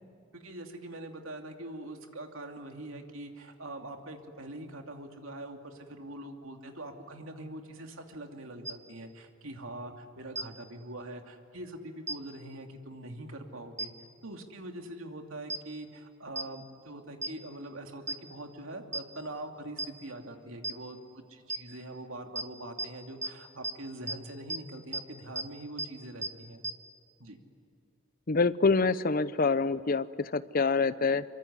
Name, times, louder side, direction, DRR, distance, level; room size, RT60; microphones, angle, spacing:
voice 1, 0.3-13.9 14.2-26.6 27.2-27.4, right 1 dB, 75° right, 4 dB, 2.7 m, -43 dB
sound 1, 8.7-8.8 10.4-10.5 12.1-12.2 13.8-13.9 15.5-15.6 16.4-16.5 17.2-17.3 18.1-18.2 18.9-19.0 19.8-19.9 20.6-20.7 21.5-21.6 22.4-22.5 22.8-22.9 23.2-23.3 23.6-23.7 24.1-24.2 24.5-24.6 24.9-25.0 25.4-25.5 25.8-25.9 26.2-26.3 26.6-26.7, right 2 dB, 15° right, 1.2 m, -32 dB
voice 2, 28.3-31.2, left 4 dB, 45° left, 15 dB, 0.7 m, -26 dB
25.0 x 24.0 x 9.8 m, 2.5 s
head